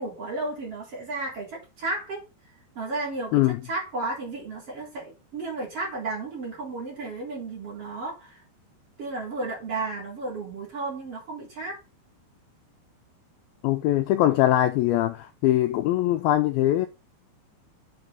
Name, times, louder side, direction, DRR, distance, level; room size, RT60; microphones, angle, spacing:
voice 1, 0.0-2.2 2.8-3.4 3.7-8.4 9.0-11.8, right 3 dB, 35° right, 4.1 m, -33 dB
voice 2, 13.6-16.9, left 14 dB, 80° left, 2.2 m, -22 dB
8.3 x 5.4 x 5.4 m
omnidirectional pair, 4.9 m